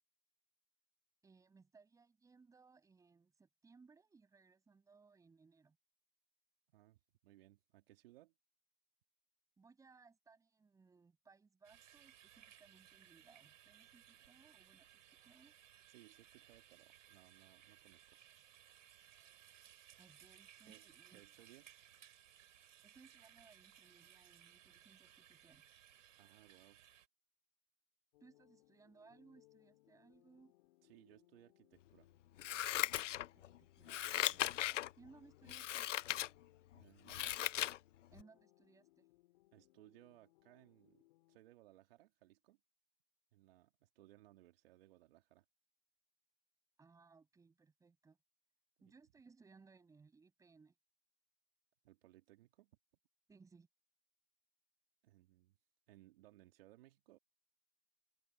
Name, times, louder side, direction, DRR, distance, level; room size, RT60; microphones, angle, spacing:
voice 1, 1.2-5.8 9.6-14.9 15.2-15.5 20.0-21.2 22.8-25.6 28.2-30.5 33.3-34.7 35.0-35.9 38.1-39.1 46.8-48.2 48.8-50.8 53.3-53.7, right 4 dB, 10° right, 7.0 m, -65 dB
voice 2, 6.7-8.3 15.9-18.2 20.6-21.8 26.1-26.8 30.8-32.1 36.7-37.7 39.5-42.6 43.3-45.4 48.8-48.9 51.8-52.8 55.0-55.6 55.9-57.2, right 16 dB, 45° right, 3.1 m, -65 dB
sound 1, 11.6-27.1, right 10 dB, 65° right, 4.6 m, -63 dB
sound 2, 28.1-41.4, left 18 dB, 45° left, 6.5 m, -71 dB
Scissors, 32.4-33.5 33.9-34.9 35.5-36.3 36.7-37.8 38.2-38.3, left 13 dB, 60° left, 0.7 m, -38 dB
open air
hypercardioid pair, 150°, 41 cm